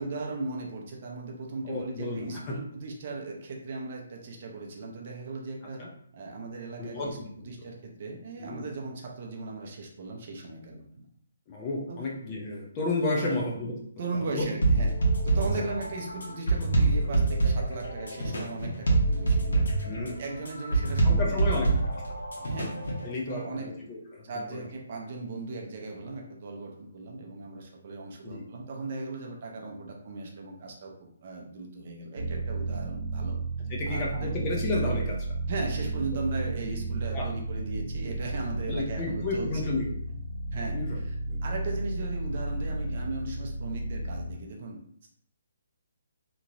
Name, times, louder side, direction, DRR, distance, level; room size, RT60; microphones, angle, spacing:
voice 1, 0.0-5.8 6.1-7.2 7.4-11.1 11.9-12.0 13.2-13.4 14.0-15.0 15.2-21.7 22.4-22.8 23.3-23.9 24.2-33.4 33.9-34.3 35.5-39.5 40.5-41.2 41.4-45.1, right 3 dB, 40° right, 0 dB, 0.6 m, -37 dB
voice 2, 1.7-2.6 5.8-5.9 6.8-7.5 8.4-8.7 11.5-13.7 14.3-14.5 19.8-20.2 21.0-22.0 23.0-24.2 24.5-24.6 28.2-28.4 33.7-35.2 37.1-37.3 38.7-39.9 40.7-41.4, left 2 dB, 20° left, -2 dB, 0.6 m, -32 dB
sound 1, 14.6-23.1, right 3 dB, 90° left, 1.1 m, -25 dB
sound 2, 32.2-44.3, right 2 dB, 80° right, 0.7 m, -33 dB
2.9 x 2.8 x 2.6 m, 0.65 s
hypercardioid pair, 170°, 0 cm